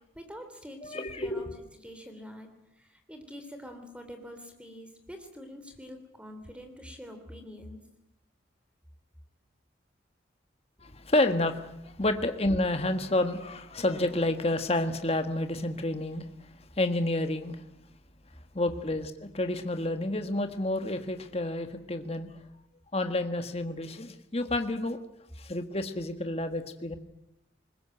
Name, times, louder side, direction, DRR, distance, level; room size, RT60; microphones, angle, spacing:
voice 1, 0.1-1.4 1.8-2.5 2.8-7.8, equal, 5° right, 6 dB, 3.3 m, -45 dB
voice 2, 0.8-1.5 10.8-16.5 16.8-17.6 18.5-22.3 22.9-25.0 25.4-27.0, left 1 dB, 35° left, 8 dB, 1.5 m, -29 dB
21.5 x 20.5 x 9.1 m, 0.83 s
head